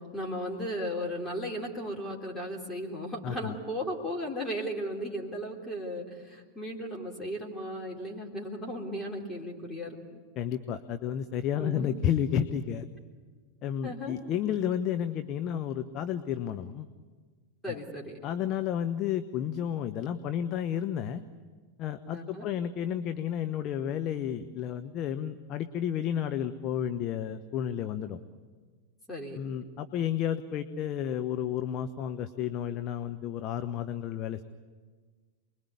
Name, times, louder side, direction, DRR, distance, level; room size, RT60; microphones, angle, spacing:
voice 1, 0.1-10.2 11.6-11.9 13.8-14.2 17.6-18.2 22.1-22.5 29.1-29.4, equal, 10° left, -2 dB, 3.6 m, -36 dB
voice 2, 3.2-3.6 10.4-12.9 13.6-16.9 17.7-17.8 18.2-21.2 21.8-28.2 29.3-34.4, left 9 dB, 35° left, 9 dB, 0.9 m, -31 dB
28.0 x 21.5 x 8.4 m, 1.5 s
figure-of-eight pair, 90°, 0 cm